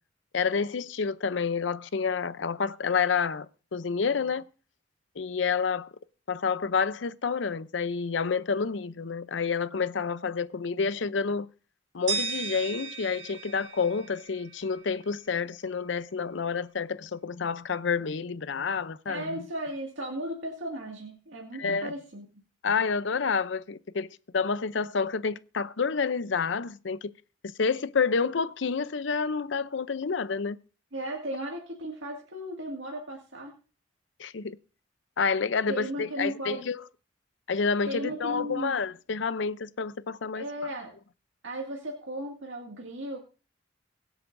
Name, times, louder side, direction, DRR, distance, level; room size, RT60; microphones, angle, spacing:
voice 1, 0.3-3.5 3.7-4.4 5.2-5.9 6.3-11.5 11.9-19.4 21.6-21.9 22.6-24.1 24.3-27.1 27.4-30.6 34.2-34.6 35.2-36.8 37.5-40.4, left 5 dB, 75° left, 0.6 m, -29 dB
sound 1, 12.1-15.0, right 5 dB, 60° right, 2.2 m, -36 dB
voice 2, 19.1-22.3 30.9-33.5 35.7-36.7 37.9-38.8 40.3-40.9 41.4-43.2, right 1 dB, 85° right, 2.1 m, -36 dB
23.0 x 8.0 x 2.6 m
head